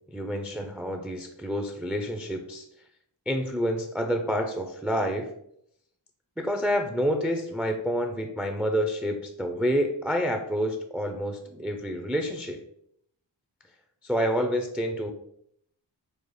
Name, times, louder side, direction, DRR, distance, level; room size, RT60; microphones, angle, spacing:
voice 1, 0.1-2.7 3.3-5.3 6.4-12.6 14.0-15.1, equal, 5° right, 4 dB, 0.3 m, -28 dB
5.1 x 2.0 x 3.1 m, 0.71 s
wide cardioid pair, 60°, 45 cm